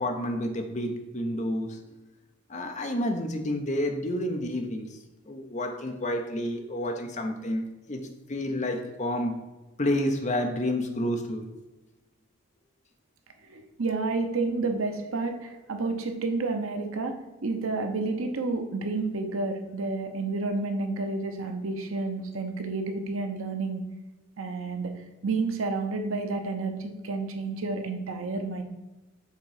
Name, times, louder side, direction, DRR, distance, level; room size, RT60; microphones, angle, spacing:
voice 1, 0.0-1.8 2.5-5.0 5.3-8.0 8.3-9.3 9.8-11.5, left 1 dB, 35° left, 4 dB, 0.7 m, -29 dB
voice 2, 13.5-17.1 17.4-23.8 24.4-24.9 25.2-28.6, right 3 dB, 80° right, 5 dB, 0.8 m, -30 dB
6.6 x 3.7 x 4.8 m, 1.1 s
head